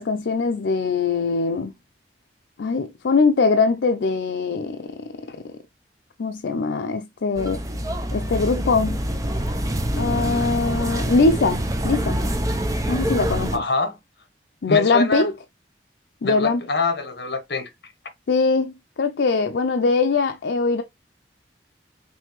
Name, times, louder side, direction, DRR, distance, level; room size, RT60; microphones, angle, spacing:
voice 1, 0.0-1.7 2.6-4.9 5.3-5.4 6.2-7.6 8.1-9.0 9.9-12.2 12.9-13.5 14.6-15.3 16.2-16.6 18.3-20.8, left 4 dB, 80° left, 0.5 m, -21 dB
sound 1, 7.4-13.6, right 1 dB, 20° right, 0.6 m, -25 dB
voice 2, 13.5-14.0 14.7-15.3 16.2-17.7, left 3 dB, 65° left, 1.2 m, -25 dB
5.4 x 3.2 x 3.0 m
head